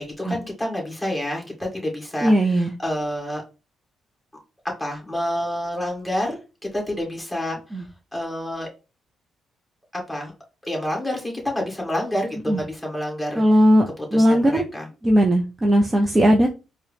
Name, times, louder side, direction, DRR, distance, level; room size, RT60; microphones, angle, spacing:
voice 1, 0.0-3.4 4.8-6.4 6.7-7.9 8.1-8.7 9.9-10.3 10.6-13.4 14.0-14.9, left 1 dB, 5° left, -1 dB, 1.9 m, -28 dB
voice 2, 2.2-2.7 7.7-7.8 12.5-12.6 13.4-14.6 15.0-16.5, equal, 20° right, 2 dB, 0.5 m, -18 dB
4.6 x 2.0 x 3.3 m, 0.31 s
cardioid pair, 90°, 0 cm